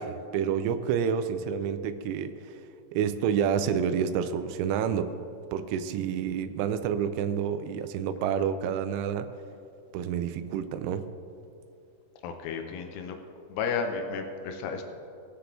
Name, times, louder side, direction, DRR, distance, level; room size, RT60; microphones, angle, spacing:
voice 1, 0.0-2.6 2.9-5.1 5.5-9.3 9.9-11.1, right 8 dB, 85° right, 10 dB, 2.9 m, -29 dB
voice 2, 12.2-13.2 13.5-14.8, left 5 dB, 80° left, 5 dB, 2.4 m, -32 dB
20.0 x 7.8 x 3.4 m, 2.6 s
omnidirectional pair, 5.6 m